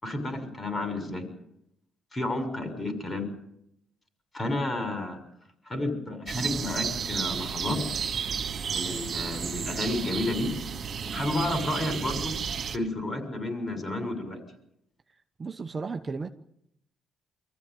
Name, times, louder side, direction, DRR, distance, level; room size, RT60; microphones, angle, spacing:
voice 1, 0.0-1.3 2.1-3.3 4.3-5.2 5.6-7.8 8.6-10.5 11.1-12.3 12.7-14.4, left 1 dB, 30° left, 7 dB, 6.6 m, -31 dB
sound 1, 6.3-12.8, right 6 dB, 55° right, 2.6 m, -32 dB
voice 2, 15.4-16.3, right 4 dB, 30° right, 6 dB, 1.1 m, -34 dB
24.0 x 15.0 x 9.4 m, 0.77 s
cardioid pair, 90°, 0 cm